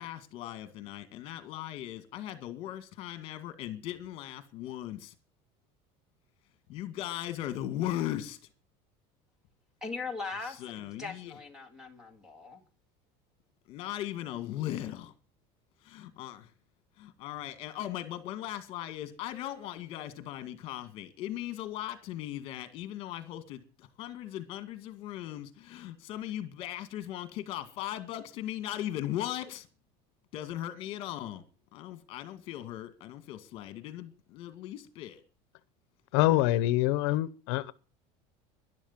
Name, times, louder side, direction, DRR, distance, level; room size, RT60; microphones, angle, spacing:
voice 1, 0.0-5.1 6.7-8.4 10.6-11.3 13.7-15.1 15.8-16.5 17.0-29.7 30.3-31.4 31.7-35.2, left 13 dB, 40° left, 2.0 m, -38 dB
voice 2, 9.8-12.6, left 4 dB, 5° right, 1.9 m, -40 dB
voice 3, 36.1-37.7, left 16 dB, 75° left, 0.8 m, -25 dB
12.0 x 11.5 x 7.3 m
cardioid pair, 180°, 14 cm